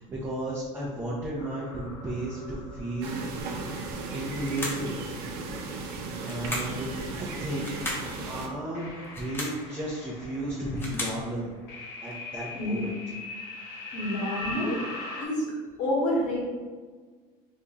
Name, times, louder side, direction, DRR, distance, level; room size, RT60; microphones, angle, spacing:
voice 1, 0.0-3.6 4.1-4.9 6.2-11.5 12.0-13.0, right 1 dB, 15° right, -6 dB, 0.7 m, -34 dB
sound 1, 1.4-4.6 5.3-5.6 5.9-7.3 7.8-15.3, left 2 dB, 80° left, 1.0 m, -42 dB
sound 2, 3.0-8.5, right 3 dB, 75° right, 0.6 m, -36 dB
sound 3, 4.4-4.9 6.2-6.8 7.6-8.1 9.0-9.6 10.5-11.2, left 1 dB, 15° left, 0.8 m, -35 dB
voice 2, 13.9-14.8 15.2-15.5 15.8-16.5, left 1 dB, 55° left, -3 dB, 1.2 m, -28 dB
2.9 x 2.7 x 3.6 m, 1.5 s
cardioid pair, 135°, 15 cm